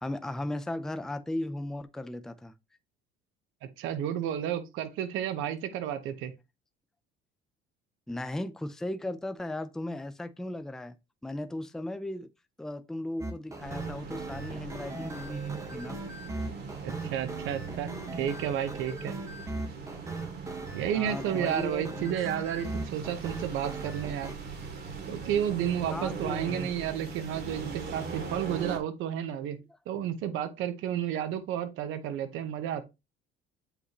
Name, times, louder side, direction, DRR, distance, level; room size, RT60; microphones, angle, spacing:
voice 1, 0.0-2.5 8.1-10.9 11.2-12.3 12.6-16.0 20.9-22.2 25.9-26.7, left 1 dB, ahead, 0.5 m, -36 dB
voice 2, 3.8-6.3 16.8-19.1 20.7-24.3 25.1-29.6 29.9-32.8, right 10 dB, 75° right, 1.0 m, -32 dB
sound 1, 13.2-24.3, right 2 dB, 15° right, 1.3 m, -39 dB
sound 2, 13.6-28.8, right 5 dB, 55° right, 2.5 m, -40 dB
8.0 x 5.0 x 3.0 m
cardioid pair, 120°, 20 cm